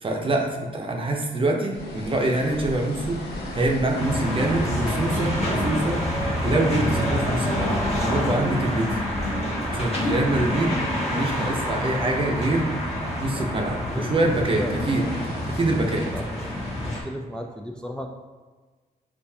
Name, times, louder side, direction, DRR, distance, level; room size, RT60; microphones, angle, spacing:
voice 1, 0.0-3.2 3.5-8.9 9.7-10.8 11.1-15.1 15.5-16.1, right 2 dB, 30° right, 1 dB, 0.7 m, -25 dB
sound 1, 1.7-17.0, left 1 dB, 80° left, 0.8 m, -40 dB
Wind instrument woodwind instrument, 3.8-10.1, right 6 dB, 85° right, 0.8 m, -39 dB
sound 2, 3.9-17.0, left 1 dB, 40° left, 1.3 m, -27 dB
voice 2, 14.5-14.9 16.1-16.5 16.9-18.1, equal, 5° left, 2 dB, 0.3 m, -35 dB
6.7 x 2.5 x 2.8 m, 1.4 s
wide cardioid pair, 125°, 17 cm